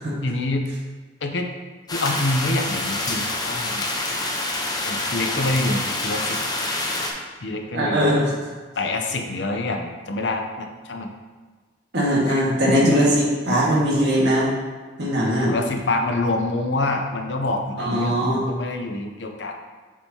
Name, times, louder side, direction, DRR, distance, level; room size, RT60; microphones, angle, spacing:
voice 1, 0.2-0.7 1.2-1.5 1.9-3.8 4.8-6.4 7.4-8.2 8.8-11.1 12.3-12.9 15.4-19.6, left 2 dB, 75° left, 4 dB, 0.7 m, -26 dB
sound 1, 1.9-7.1, left 2 dB, 20° left, 0.8 m, -27 dB
voice 2, 7.7-8.3 11.9-14.5 15.0-15.5 17.8-18.5, equal, 65° right, -5 dB, 1.8 m, -20 dB
7.2 x 5.5 x 2.9 m, 1.4 s
head